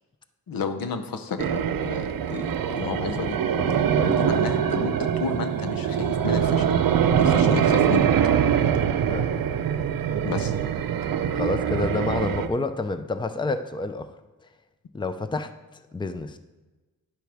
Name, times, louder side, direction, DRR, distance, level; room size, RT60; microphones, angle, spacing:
voice 1, 0.5-3.4 4.1-6.7 7.2-8.1 10.2-10.5, left 5 dB, 80° left, 8 dB, 0.8 m, -32 dB
sound 1, 1.4-12.5, right 8 dB, 75° right, 0.6 m, -23 dB
voice 2, 3.6-4.2 7.1-7.2 9.1-9.3 11.3-14.1 14.9-15.5 15.9-16.4, left 3 dB, 15° left, 10 dB, 0.5 m, -29 dB
10.5 x 7.5 x 3.5 m, 1.2 s
cardioid pair, 70°, 34 cm